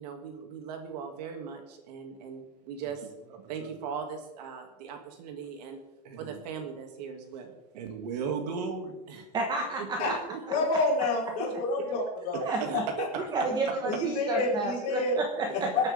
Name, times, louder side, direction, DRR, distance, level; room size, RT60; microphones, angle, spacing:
voice 1, 0.0-5.8 6.0-9.3 9.8-10.7 11.4-11.5 12.4-13.2 15.5-15.8, right 6 dB, 85° right, 4 dB, 2.7 m, -38 dB
voice 2, 9.3-10.0 12.4-12.8 13.2-15.7, right 3 dB, 20° right, 2 dB, 1.3 m, -30 dB
voice 3, 10.5-13.1 13.6-15.2 15.5-15.9, left 3 dB, 40° left, -4 dB, 4.8 m, -29 dB
25.5 x 8.9 x 3.8 m, 0.96 s
supercardioid pair, 170°, 20 cm